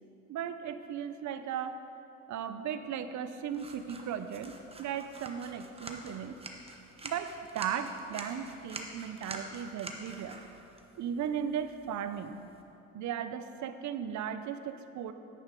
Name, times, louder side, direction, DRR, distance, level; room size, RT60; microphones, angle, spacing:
voice 1, 0.3-1.8 2.3-6.4 7.0-10.4 11.0-12.4 12.9-15.1, right 8 dB, 70° right, 10 dB, 0.6 m, -36 dB
sound 1, 3.5-12.6, right 2 dB, 20° right, 1.1 m, -47 dB
10.0 x 9.4 x 3.8 m, 2.9 s
cardioid pair, 90°, 30 cm